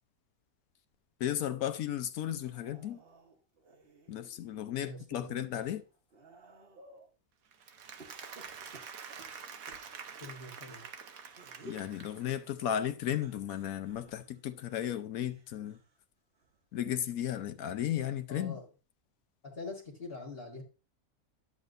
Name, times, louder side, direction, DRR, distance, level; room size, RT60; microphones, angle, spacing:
voice 1, 1.2-3.0 4.1-5.8 11.6-15.8 16.7-18.6, left 11 dB, 80° left, 1.1 m, -35 dB
sound 1, 2.3-4.7 5.2-7.1 8.0-10.8 11.3-11.9 13.1-16.0 16.3-16.8 17.9-18.0, right 1 dB, 45° right, 1.3 m, -56 dB
voice 2, 4.8-5.4 10.2-10.8 18.3-18.7 19.4-20.6, left 3 dB, 45° left, 1.6 m, -44 dB
Applause, 7.5-12.5, right 6 dB, 80° right, 1.3 m, -47 dB
10.5 x 7.4 x 2.6 m
omnidirectional pair, 1.5 m